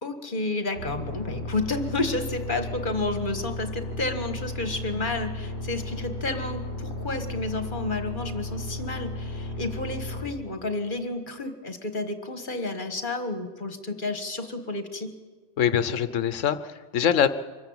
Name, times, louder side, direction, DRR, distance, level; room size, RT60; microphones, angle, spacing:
voice 1, 0.0-15.1, left 2 dB, 45° left, 8 dB, 1.7 m, -31 dB
sound 1, 0.7-10.2, left 1 dB, 55° right, 6.6 m, -34 dB
voice 2, 15.6-17.3, left 8 dB, 90° left, 13 dB, 1.2 m, -23 dB
24.5 x 14.0 x 8.7 m, 1.3 s
omnidirectional pair, 1.3 m